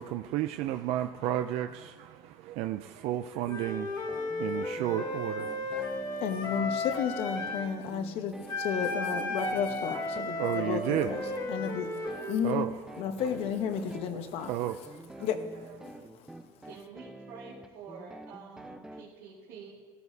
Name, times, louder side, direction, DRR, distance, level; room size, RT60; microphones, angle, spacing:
voice 1, 0.0-6.6 9.9-11.5 12.0-12.8 13.8-15.3 15.8-16.1, right 13 dB, 65° right, 0.4 m, -34 dB
Wind instrument woodwind instrument, 3.5-7.7 8.5-12.4, left 2 dB, 35° left, 1.5 m, -34 dB
sound 1, 4.1-19.0, right 1 dB, 5° right, 0.6 m, -47 dB
voice 2, 6.2-11.2 11.5-11.9 12.3-12.7 13.0-14.5 15.2-15.5 15.8-16.2, left 7 dB, 60° left, 1.0 m, -32 dB
voice 3, 16.7-19.7, right 5 dB, 80° right, 2.0 m, -48 dB
14.5 x 12.5 x 2.8 m
supercardioid pair, 120°, 11 cm